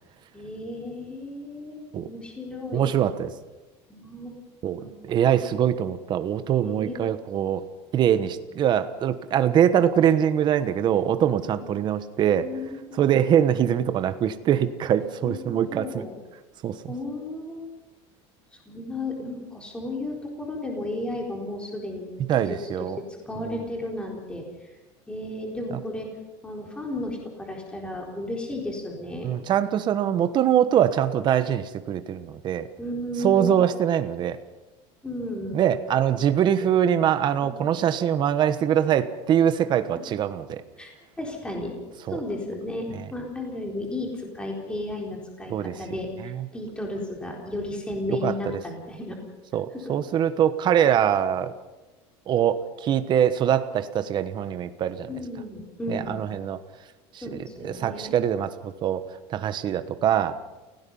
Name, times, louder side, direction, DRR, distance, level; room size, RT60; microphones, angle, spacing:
voice 1, 0.3-2.9 3.9-4.3 4.7-5.2 6.6-7.2 11.6-11.7 12.4-12.9 15.2-16.1 16.9-17.7 18.7-22.1 22.4-24.4 25.1-26.1 26.4-29.3 32.8-33.6 35.0-35.7 37.4-37.7 40.8-40.9 41.2-41.7 42.1-46.1 46.5-49.2 49.7-50.0 55.0-56.2 57.2-58.1, left 1 dB, 5° left, 0 dB, 4.1 m, -34 dB
voice 2, 2.7-3.3 4.6-7.6 7.9-12.5 13.0-16.0 16.6-16.9 22.3-23.0 29.2-32.7 33.2-34.4 35.5-40.6 42.1-42.2 45.5-45.7 46.3-46.4 48.1-48.3 49.5-51.5 52.3-55.1 55.9-56.6 57.3-57.4 57.6-59.0 59.3-60.3, right 9 dB, 35° right, 11 dB, 1.2 m, -23 dB
29.0 x 17.5 x 5.6 m, 1.1 s
cardioid pair, 160°, 14 cm